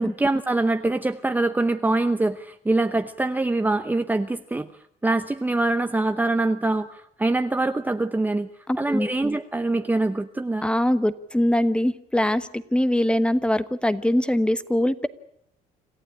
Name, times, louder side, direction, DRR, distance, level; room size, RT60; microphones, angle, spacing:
voice 1, 0.0-4.7 5.0-8.5 8.8-10.7, right 2 dB, 10° right, 8 dB, 0.8 m, -24 dB
voice 2, 8.7-9.1 10.6-15.1, left 1 dB, 5° left, 13 dB, 1.1 m, -22 dB
27.0 x 14.5 x 8.6 m, 0.73 s
cardioid pair, 110°, 17 cm